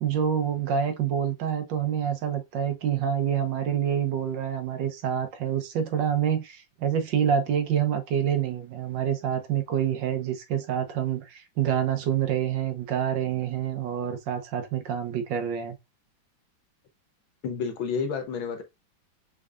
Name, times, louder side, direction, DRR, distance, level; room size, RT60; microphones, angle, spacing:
voice 1, 0.0-15.7, right 9 dB, 70° right, 1.4 m, -27 dB
voice 2, 17.4-18.6, left 5 dB, 80° left, 1.8 m, -30 dB
5.8 x 3.7 x 2.4 m
omnidirectional pair, 2.1 m